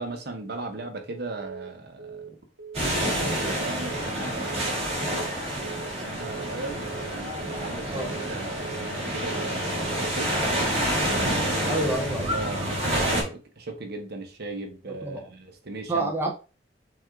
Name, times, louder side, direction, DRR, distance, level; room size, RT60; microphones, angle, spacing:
voice 1, 0.0-2.4 3.1-10.3 11.6-11.9 12.2-16.1, right 2 dB, 60° right, 0.9 m, -38 dB
Telephone, 1.4-1.7 2.0-2.3 2.6-2.9 3.2-3.5 3.8-4.1 4.4-4.7 5.0-5.3 5.6-5.9 6.2-6.5 6.8-7.1 7.4-7.7 8.0-8.3 8.6-8.9 9.2-9.5 9.8-10.1 10.4-10.7 11.0-11.3 11.6-11.9 12.2-12.5, right 6 dB, 90° right, 0.7 m, -40 dB
sound 1, 2.7-13.2, right 1 dB, 35° right, 1.9 m, -28 dB
voice 2, 11.7-12.3 15.0-15.3 15.9-16.3, right 2 dB, 10° right, 0.6 m, -27 dB
5.9 x 2.5 x 3.5 m
head